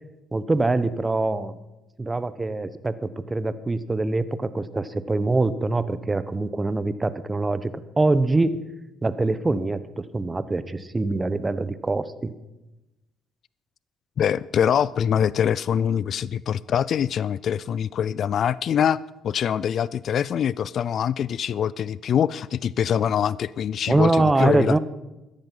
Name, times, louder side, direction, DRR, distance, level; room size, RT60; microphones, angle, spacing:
voice 1, 0.3-1.6 2.0-8.6 9.0-12.3 23.9-24.8, right 2 dB, 25° right, 1.0 m, -24 dB
voice 2, 14.2-19.0 19.2-24.8, left 8 dB, 60° left, 0.3 m, -24 dB
14.0 x 10.5 x 5.5 m
supercardioid pair, 65°, 0 cm